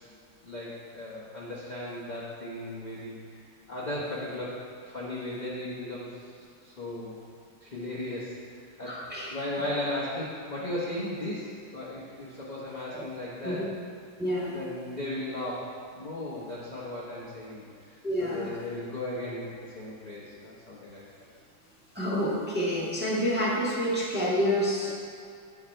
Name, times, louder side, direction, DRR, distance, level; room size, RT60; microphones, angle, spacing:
voice 1, 0.4-3.2 3.7-6.3 6.6-7.1 7.6-9.0 9.3-13.7 14.5-21.0, left 1 dB, 30° left, -7 dB, 0.8 m, -36 dB
voice 2, 8.9-9.3 12.9-13.0 13.4-13.6 14.2-14.5 18.0-18.5 21.9-24.9, equal, 5° right, -6 dB, 1.3 m, -28 dB
8.8 x 5.8 x 4.4 m, 2.3 s
omnidirectional pair, 2.2 m